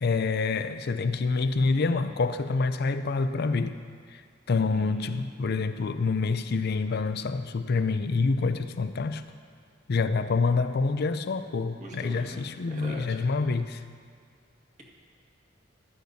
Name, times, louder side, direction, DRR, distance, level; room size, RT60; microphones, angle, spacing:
voice 1, 0.0-3.8 4.1-4.2 4.5-9.2 9.9-13.8, left 4 dB, 55° left, 0.5 m, -27 dB
voice 2, 4.7-5.5 11.8-13.2, right 1 dB, 40° right, 1.8 m, -43 dB
15.0 x 12.0 x 2.7 m
head